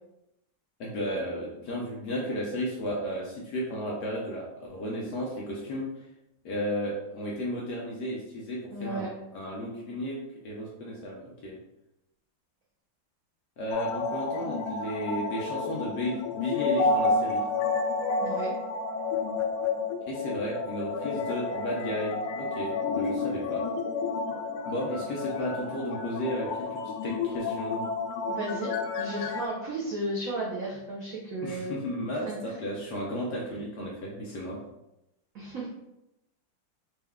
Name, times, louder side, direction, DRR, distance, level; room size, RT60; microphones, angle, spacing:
voice 1, 0.8-5.9 6.4-9.1 9.3-10.2 10.4-11.6 13.6-17.4 20.1-23.6 24.7-27.8 31.4-34.6, equal, 65° left, -3 dB, 1.0 m, -33 dB
voice 2, 8.7-9.1 18.2-18.5 28.3-31.8 32.2-32.6 35.3-35.7, right 2 dB, 80° right, -4 dB, 0.7 m, -34 dB
sound 1, 13.7-29.5, left 3 dB, 90° left, 1.5 m, -30 dB
4.3 x 2.2 x 3.5 m, 0.88 s
omnidirectional pair, 2.4 m